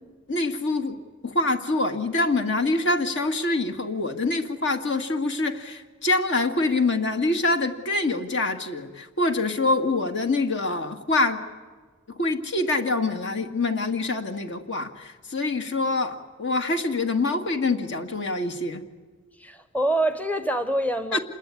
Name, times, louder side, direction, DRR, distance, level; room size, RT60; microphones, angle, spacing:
voice 1, 0.3-11.4 12.1-18.8 21.1-21.2, left 2 dB, 60° left, 2.0 m, -25 dB
voice 2, 19.4-21.2, right 1 dB, 10° left, 0.9 m, -25 dB
27.5 x 21.0 x 9.6 m
head